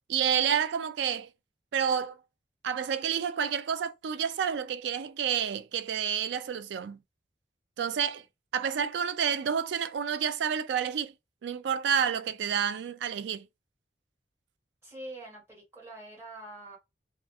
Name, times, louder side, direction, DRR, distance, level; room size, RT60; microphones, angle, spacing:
voice 1, 0.1-1.3 1.7-2.1 2.6-7.0 7.8-8.2 8.5-11.1 11.4-13.5, right 7 dB, 75° right, 0.3 m, -29 dB
voice 2, 14.8-16.8, right 1 dB, 15° right, 1.4 m, -44 dB
2.4 x 2.3 x 2.7 m
head